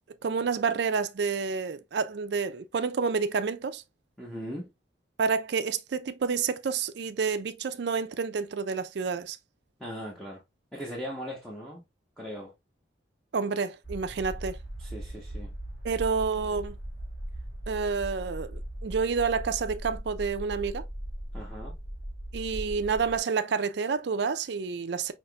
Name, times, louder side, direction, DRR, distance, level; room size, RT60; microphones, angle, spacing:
voice 1, 0.2-3.8 5.2-9.4 13.3-14.6 15.8-16.8 17.7-20.9 22.3-25.1, right 5 dB, 65° right, 0.4 m, -29 dB
voice 2, 4.2-4.7 9.8-10.4 10.7-11.8 12.2-12.5 14.8-15.5 21.3-21.7, equal, ahead, 0.8 m, -39 dB
sound 1, 13.8-23.2, right 1 dB, 70° left, 1.7 m, -39 dB
5.6 x 2.9 x 2.2 m
head